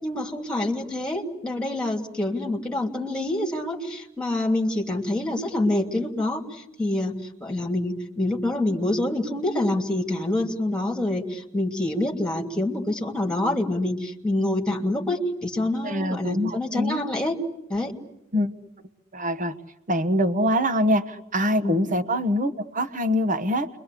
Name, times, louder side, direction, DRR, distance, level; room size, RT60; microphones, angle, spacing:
voice 1, 0.0-6.4 6.8-7.1 7.4-17.4 17.7-17.9 21.6-21.8, left 1 dB, 5° left, 2 dB, 2.8 m, -26 dB
voice 2, 15.8-17.0 18.3-18.5 19.1-19.5 19.9-23.7, equal, 40° right, 9 dB, 1.3 m, -24 dB
30.0 x 23.5 x 8.4 m, 0.82 s
head